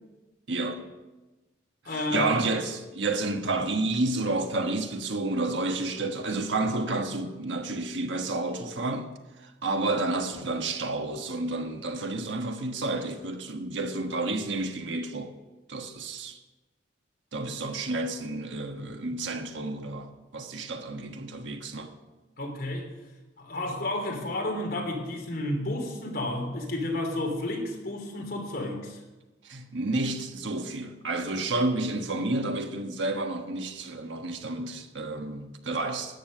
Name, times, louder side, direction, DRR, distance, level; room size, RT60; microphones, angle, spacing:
voice 1, 0.5-0.9 1.9-9.1 9.4-15.3 15.7-16.4 17.3-21.9 29.4-36.2, right 2 dB, 80° right, 1.4 m, -30 dB
voice 2, 1.8-2.3 22.4-22.9 23.4-29.0, left 1 dB, 55° left, 3.1 m, -31 dB
13.0 x 9.2 x 6.5 m
head